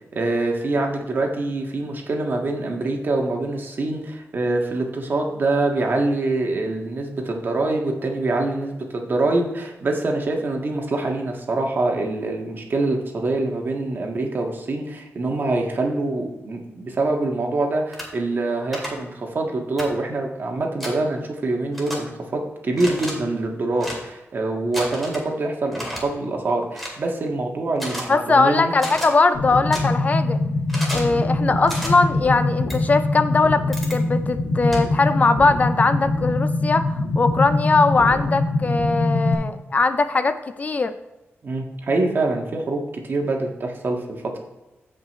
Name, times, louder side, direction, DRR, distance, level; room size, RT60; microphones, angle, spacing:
voice 1, 0.1-28.7 41.4-44.4, right 2 dB, 45° right, 1 dB, 1.6 m, -25 dB
sound 1, 17.9-18.1 18.7-18.9 19.8-19.9 20.8-20.9 21.7-22.0 22.7-23.1 23.8-24.0 24.7-25.2 25.7-26.0 26.7-27.0 27.8-28.0 28.8-29.1 29.7-29.8 30.7-31.1 31.7-31.9 32.7-32.8 33.7-34.0 34.7-34.8, equal, ahead, 2.2 m, -31 dB
voice 2, 28.1-30.4 30.9-36.9 37.2-40.9, left 3 dB, 35° left, 11 dB, 0.4 m, -20 dB
sound 2, 29.3-39.3, left 2 dB, 90° left, 2.0 m, -23 dB
15.5 x 5.3 x 3.1 m, 1.0 s
wide cardioid pair, 150°, 5 cm